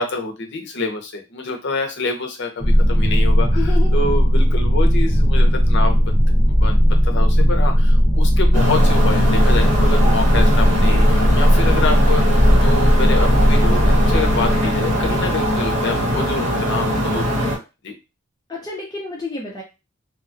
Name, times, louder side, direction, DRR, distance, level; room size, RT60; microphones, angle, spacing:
voice 1, 0.0-3.5 3.9-17.4 17.8-17.9, left 3 dB, 55° left, 4 dB, 0.6 m, -27 dB
sound 1, 2.6-15.9, equal, 40° right, 0.9 m, -16 dB
voice 2, 3.5-3.9 18.5-19.6, left 3 dB, 20° left, -3 dB, 0.6 m, -29 dB
sound 2, 8.5-17.6, equal, 65° right, 1.6 m, -21 dB
2.8 x 2.3 x 2.6 m, 0.26 s
head